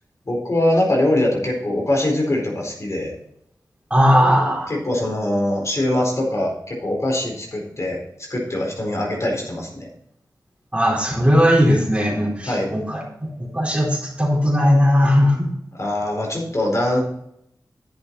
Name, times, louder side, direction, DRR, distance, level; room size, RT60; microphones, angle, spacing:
voice 1, 0.2-3.1 4.8-8.0 8.3-9.9 12.5-12.7 15.7-17.0, left 1 dB, 45° left, -1 dB, 4.3 m, -22 dB
voice 2, 3.9-4.7 10.7-13.0 13.4-15.5, equal, 15° right, -2 dB, 4.1 m, -17 dB
11.0 x 8.1 x 4.0 m, 0.74 s
wide cardioid pair, 65°, 7 cm